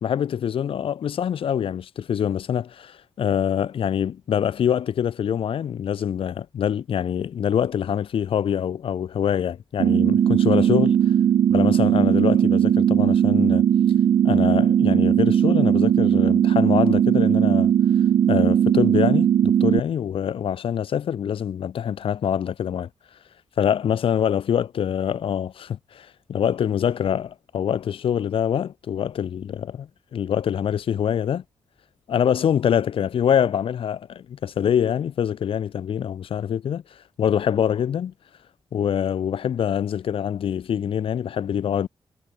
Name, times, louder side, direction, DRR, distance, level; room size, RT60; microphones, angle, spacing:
voice 1, 0.0-11.0 11.5-13.6 14.2-17.7 18.3-22.9 23.6-31.4 32.1-36.8 37.2-38.1 38.7-41.9, left 9 dB, 75° left, 1.3 m, -24 dB
sound 1, 9.8-19.8, right 9 dB, 80° right, 0.7 m, -18 dB
wide cardioid pair, 165°, 9 cm